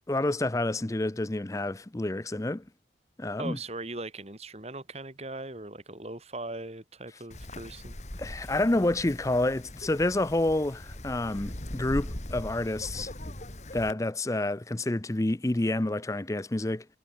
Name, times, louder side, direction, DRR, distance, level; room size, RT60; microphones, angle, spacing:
voice 1, 0.1-2.6 3.2-3.6 8.2-13.1 13.7-16.9, left 2 dB, 20° left, 0.6 m, -28 dB
voice 2, 3.4-8.0, right 2 dB, 35° right, 2.5 m, -39 dB
Wind, 7.3-13.9, left 1 dB, 40° left, 2.4 m, -40 dB
head